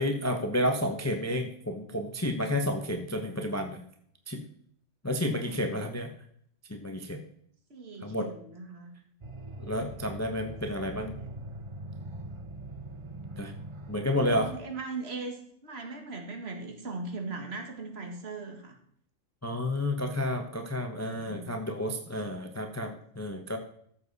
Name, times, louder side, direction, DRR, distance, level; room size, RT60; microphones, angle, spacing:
voice 1, 0.0-3.8 4.3-4.4 5.0-6.1 6.7-7.2 8.0-8.3 9.6-11.2 13.4-13.5 13.9-14.5 19.4-23.6, left 1 dB, 15° left, 4 dB, 0.9 m, -31 dB
voice 2, 7.7-8.9 10.8-10.9 11.2-11.4 14.0-18.8 21.0-21.6, right 3 dB, 50° right, 4 dB, 2.1 m, -40 dB
sound 1, 9.2-14.6, right 2 dB, 30° right, 0.7 m, -42 dB
14.0 x 7.4 x 4.1 m, 0.65 s
omnidirectional pair, 1.4 m